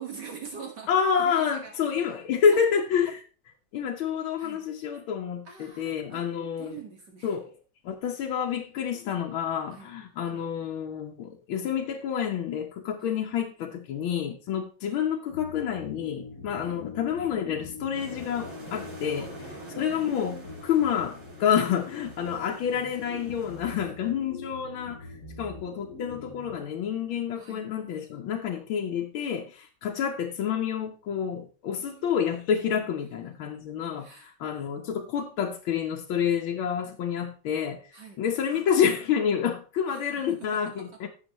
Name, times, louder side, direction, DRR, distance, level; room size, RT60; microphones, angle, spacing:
voice 1, 0.0-0.9 1.2-2.2 2.5-2.6 4.4-4.7 5.5-6.3 6.6-7.4 9.7-9.9 13.0-13.2 16.6-16.8 19.2-20.1 22.4-22.5 23.8-24.0 27.3-27.7 31.7-32.3 33.9-34.3 37.9-38.2 39.9-41.0, right 6 dB, 60° right, 2.0 m, -45 dB
voice 2, 0.9-3.2 3.7-6.8 7.2-7.5 7.9-19.3 19.8-37.8 38.2-41.1, left 8 dB, 90° left, 1.8 m, -28 dB
sound 1, 15.3-27.2, left 3 dB, 50° left, 4.1 m, -44 dB
sound 2, 18.0-23.7, right 2 dB, 80° right, 5.4 m, -47 dB
15.5 x 7.0 x 3.0 m
omnidirectional pair, 2.2 m